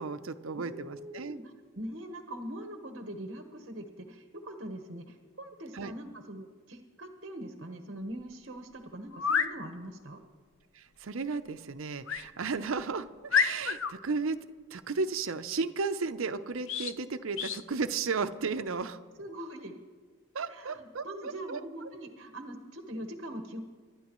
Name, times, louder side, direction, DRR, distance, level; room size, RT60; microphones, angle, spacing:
voice 1, 0.0-1.4 5.7-5.9 10.7-14.4 14.7-19.0 20.3-21.6, right 4 dB, 75° right, 10 dB, 0.6 m, -34 dB
voice 2, 0.5-10.2 19.2-19.8 20.5-23.6, right 1 dB, 55° right, 5 dB, 1.1 m, -42 dB
sound 1, 8.2-8.3 9.1-9.5 12.1-12.3 12.8-12.9 13.3-13.9 16.7-17.0 17.4-17.6, left 6 dB, 70° left, 0.6 m, -28 dB
25.0 x 12.0 x 3.1 m, 1.5 s
head